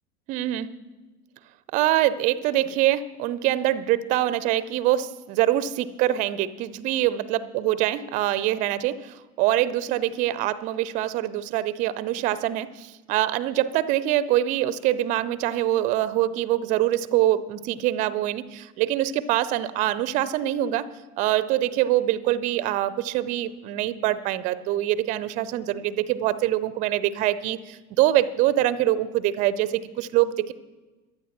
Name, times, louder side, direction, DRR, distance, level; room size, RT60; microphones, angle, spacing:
voice 1, 0.3-0.7 1.7-20.9 21.2-30.5, right 13 dB, 20° right, 18 dB, 0.3 m, -24 dB
22.5 x 12.5 x 2.9 m, 1.2 s
figure-of-eight pair, 85°, 46 cm